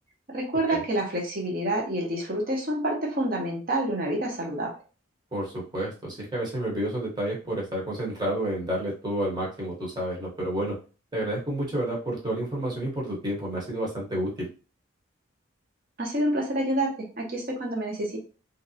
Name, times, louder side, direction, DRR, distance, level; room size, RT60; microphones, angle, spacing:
voice 1, 0.3-4.7 16.0-18.2, right 1 dB, 45° right, -1 dB, 1.0 m, -28 dB
voice 2, 5.3-10.7 11.1-14.5, right 1 dB, 20° right, -4 dB, 1.0 m, -30 dB
3.2 x 2.7 x 2.7 m, 0.35 s
head